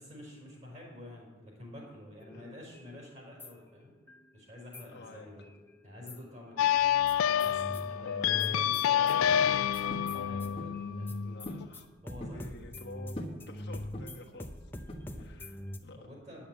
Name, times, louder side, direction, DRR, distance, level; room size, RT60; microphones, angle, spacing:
voice 1, 0.0-3.9 4.3-5.5 5.8-6.7 7.4-11.2 12.0-12.5 14.9-15.3 16.0-16.5, left 1 dB, 35° right, -2 dB, 4.3 m, -49 dB
sound 1, 2.2-4.3 4.7-6.3 6.7-15.8, left 1 dB, 10° left, 0.6 m, -44 dB
voice 2, 4.9-5.3 8.2-8.7 11.2-11.9 12.3-14.5 15.1-16.1, left 2 dB, 55° left, 1 dB, 1.3 m, -50 dB
sound 2, 6.6-11.7, left 10 dB, 80° left, 0.3 m, -28 dB
sound 3, 9.9-10.2 10.6-10.8 11.5-11.7 12.0-12.5 13.2-13.5 13.9-14.3 14.9-15.4, equal, 25° left, 1.3 m, -42 dB
10.0 x 7.2 x 8.4 m, 1.3 s
head